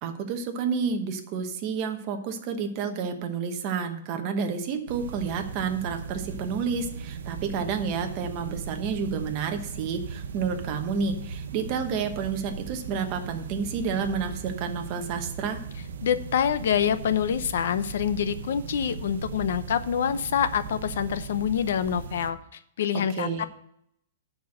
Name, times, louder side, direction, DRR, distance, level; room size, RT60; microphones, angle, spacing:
voice 1, 0.0-15.6 23.2-23.5, right 6 dB, 30° right, 5 dB, 1.0 m, -30 dB
sound 1, 4.9-22.3, right 5 dB, 90° right, 0.8 m, -38 dB
voice 2, 16.0-22.4 22.8-23.4, left 8 dB, 65° left, 13 dB, 0.7 m, -26 dB
10.5 x 4.5 x 7.5 m, 0.72 s
hypercardioid pair, 175°, 0 cm